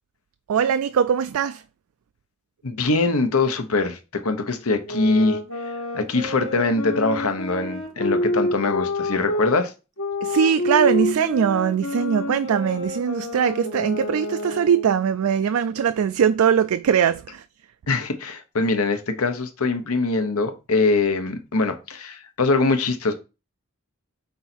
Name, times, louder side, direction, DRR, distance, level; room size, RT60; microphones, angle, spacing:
voice 1, 0.5-1.6 10.2-17.4, right 7 dB, 75° right, 0.3 m, -21 dB
voice 2, 2.6-5.4 5.9-9.7 17.9-23.1, left 3 dB, 80° left, 1.0 m, -23 dB
sound 1, 4.8-9.5 10.0-14.9, left 1 dB, 60° left, 1.3 m, -28 dB
5.5 x 4.0 x 4.4 m
head